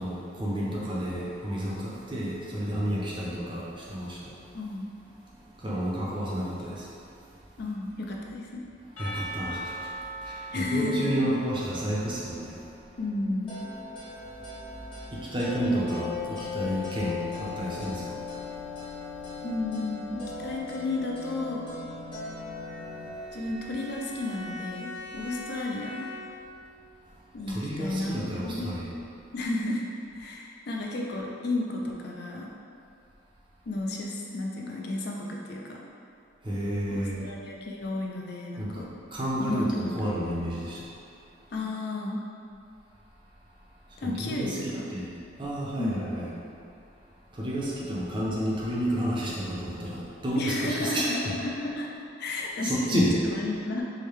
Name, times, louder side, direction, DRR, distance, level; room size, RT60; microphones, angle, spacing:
voice 1, 0.0-4.3 5.6-6.8 9.0-9.7 10.2-12.6 15.1-18.2 27.5-28.9 36.4-37.2 38.6-38.8 39.1-40.8 44.0-45.0 45.4-46.3 47.4-51.1 52.6-53.1, equal, 25° right, -6 dB, 0.5 m, -30 dB
voice 2, 4.5-4.9 7.6-8.7 10.5-11.2 13.0-13.6 19.4-21.7 23.3-26.1 27.3-28.7 29.3-29.9 30.1-32.5 33.7-35.8 36.9-38.9 39.4-40.2 41.5-42.2 44.0-44.9 45.8-46.0 50.4-51.9 52.2-52.8 53.2-53.8, left 2 dB, 50° left, -1 dB, 0.4 m, -32 dB
Percussion / Church bell, 9.0-12.9, right 1 dB, 80° left, 1.0 m, -40 dB
sound 1, 13.5-23.1, left 4 dB, 25° left, 0.8 m, -38 dB
Bowed string instrument, 22.2-26.6, left 2 dB, 85° right, 0.8 m, -43 dB
4.8 x 2.2 x 3.1 m, 2.5 s
head